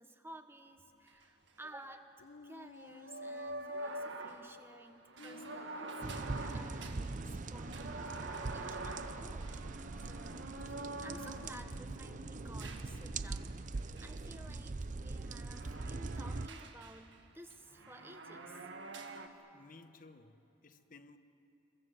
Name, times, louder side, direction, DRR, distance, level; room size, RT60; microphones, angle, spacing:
voice 1, 0.0-2.1 2.4-9.6 10.0-13.7 14.0-18.6, right 1 dB, 10° right, 1.2 m, -55 dB
sound 1, 0.8-0.9 1.1-1.2 3.0-12.0 12.6-13.5 14.0-17.2 17.5-19.3, right 2 dB, 65° right, 1.8 m, -46 dB
sound 2, 2.2-4.2 5.2-7.1 10.9-13.2, left 3 dB, 85° left, 1.1 m, -54 dB
sound 3, 6.0-16.5, right 3 dB, 40° right, 0.6 m, -42 dB
voice 2, 19.5-21.2, left 3 dB, 45° left, 1.2 m, -57 dB
29.0 x 22.5 x 7.9 m
head